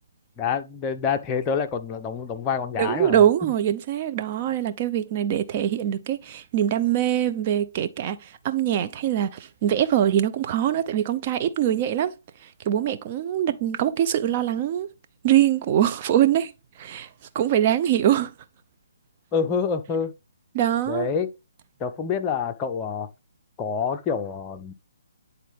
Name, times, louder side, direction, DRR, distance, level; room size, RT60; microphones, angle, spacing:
voice 1, 0.4-3.5 19.3-20.1 20.9-21.3 21.8-23.1 23.6-24.7, left 6 dB, 20° left, 0.8 m, -27 dB
voice 2, 2.7-12.1 12.6-14.9 15.2-16.5 16.8-17.1 17.3-18.3 20.5-21.1, right 11 dB, 35° right, 0.6 m, -23 dB
9.3 x 3.9 x 3.6 m
figure-of-eight pair, 140°, 0 cm